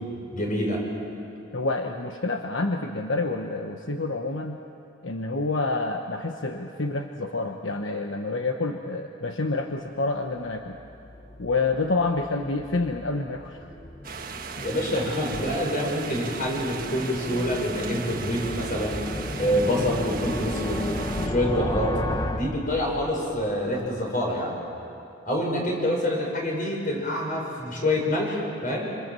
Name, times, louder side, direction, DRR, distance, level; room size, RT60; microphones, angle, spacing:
voice 1, 0.3-0.8 14.6-19.0 19.4-20.8 21.2-22.0 22.3-24.5 25.2-28.9, left 1 dB, 45° left, -1 dB, 6.6 m, -26 dB
voice 2, 1.5-4.6 5.0-10.8 11.4-13.7, left 3 dB, 75° left, 4 dB, 1.2 m, -28 dB
sound 1, 10.5-23.4, left 1 dB, 20° left, 1.1 m, -34 dB
sound 2, 14.0-21.3, right 5 dB, 50° right, 1.5 m, -37 dB
28.0 x 27.0 x 7.6 m, 2.8 s
head